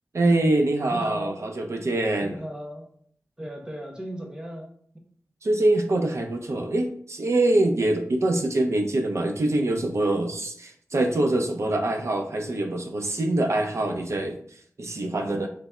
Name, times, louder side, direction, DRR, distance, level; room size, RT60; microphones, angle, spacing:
voice 1, 0.1-2.4 5.4-14.4 14.8-15.5, right 2 dB, 60° right, 4 dB, 0.5 m, -24 dB
voice 2, 0.9-1.4 2.2-2.8 3.4-4.7, equal, 15° right, 1 dB, 0.8 m, -35 dB
3.3 x 2.1 x 3.6 m, 0.62 s
wide cardioid pair, 60°, 5 cm